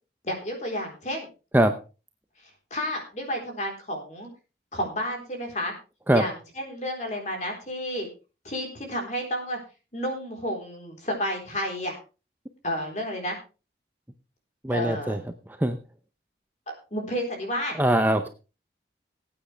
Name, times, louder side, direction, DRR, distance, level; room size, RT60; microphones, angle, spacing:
voice 1, 0.2-1.3 2.7-4.3 4.7-5.7 6.1-8.1 8.4-9.6 9.9-12.0 12.6-13.4 14.7-15.2 16.7-17.7, equal, 40° left, 2 dB, 3.9 m, -31 dB
voice 2, 14.6-15.2 15.5-15.8 17.8-18.3, right 1 dB, 10° right, 7 dB, 0.6 m, -22 dB
18.0 x 8.8 x 3.3 m, 0.33 s
head